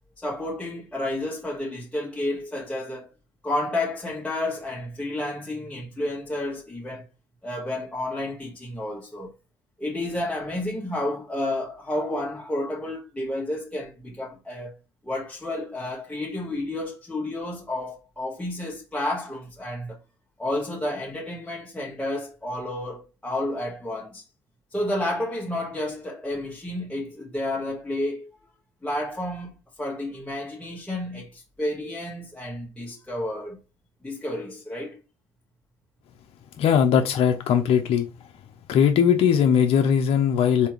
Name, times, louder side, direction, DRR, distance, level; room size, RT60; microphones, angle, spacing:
voice 1, 0.2-3.1 3.4-7.1 7.4-9.3 9.8-14.7 15.0-20.0 20.4-24.2 24.7-28.3 28.8-33.6 34.0-35.0, left 1 dB, 10° left, 1.0 m, -31 dB
voice 2, 36.6-38.1 38.7-40.7, left 8 dB, 60° left, 0.5 m, -19 dB
3.4 x 2.7 x 3.0 m
hypercardioid pair, 60°, 11 cm